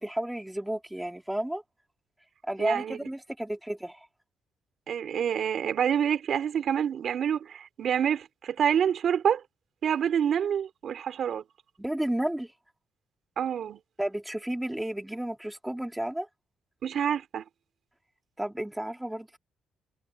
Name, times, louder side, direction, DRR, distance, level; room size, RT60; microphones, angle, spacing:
voice 1, 0.0-1.6 2.4-4.1 11.8-12.5 14.0-16.3 18.4-19.4, right 1 dB, 5° right, 1.8 m, -32 dB
voice 2, 2.6-3.0 4.9-9.4 9.8-11.4 13.4-13.8 16.8-17.4, right 8 dB, 60° right, 3.9 m, -27 dB
cardioid pair, 90°, 0 cm